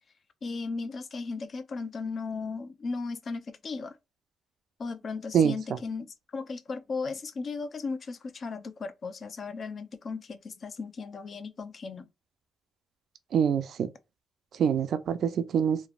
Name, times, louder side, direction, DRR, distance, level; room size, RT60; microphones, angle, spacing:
voice 1, 0.4-3.9 4.8-6.1 6.3-12.1, left 4 dB, 45° left, 0.4 m, -36 dB
voice 2, 13.3-13.9 14.5-15.8, right 8 dB, 65° right, 0.4 m, -25 dB
3.1 x 2.1 x 2.4 m
cardioid pair, 90°, 0 cm